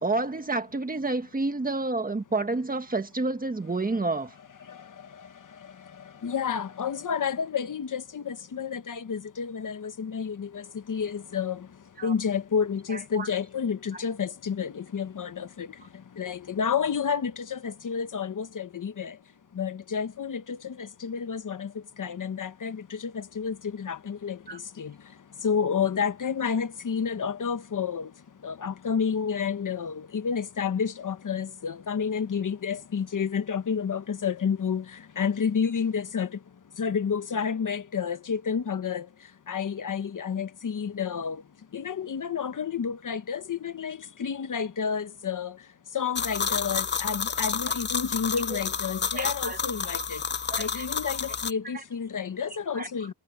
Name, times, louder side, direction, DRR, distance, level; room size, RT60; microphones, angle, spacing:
voice 1, 0.0-4.3 12.0-12.1 12.9-13.3 24.5-24.6 49.1-49.6 50.5-50.9 52.7-52.9, right 3 dB, 25° right, 1.4 m, -29 dB
voice 2, 4.6-50.3 50.6-53.1, left 6 dB, 55° left, 1.1 m, -30 dB
sound 1, 46.2-51.5, left 6 dB, 30° left, 0.5 m, -30 dB
wide cardioid pair, 175°, 37 cm